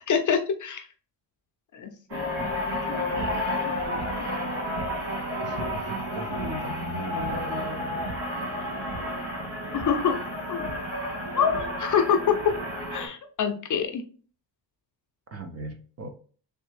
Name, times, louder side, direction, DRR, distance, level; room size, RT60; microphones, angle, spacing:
voice 1, 0.1-0.9 1.7-4.5 9.7-10.2 10.5-10.7 11.3-12.4 12.9-14.0, left 7 dB, 45° left, 6 dB, 0.5 m, -27 dB
sound 1, 2.1-13.1, left 1 dB, 80° right, 1.8 m, -31 dB
voice 2, 5.4-8.0 15.3-16.1, right 2 dB, 35° right, 5 dB, 0.5 m, -37 dB
3.4 x 3.2 x 3.2 m, 0.41 s
wide cardioid pair, 175°, 45 cm